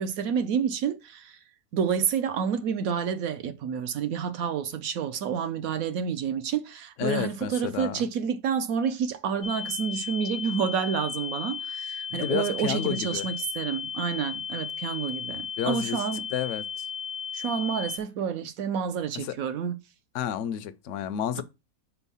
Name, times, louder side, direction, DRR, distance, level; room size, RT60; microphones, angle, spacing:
voice 1, 0.0-1.4 1.7-16.2 17.3-19.8, right 7 dB, 70° right, 1.1 m, -29 dB
voice 2, 7.0-8.1 12.1-13.3 15.6-16.0 16.3-16.9 19.1-19.3 20.1-21.4, left 10 dB, 65° left, 0.8 m, -31 dB
sound 1, 9.4-18.0, left 7 dB, 80° left, 0.3 m, -35 dB
4.5 x 4.4 x 5.5 m
omnidirectional pair, 1.6 m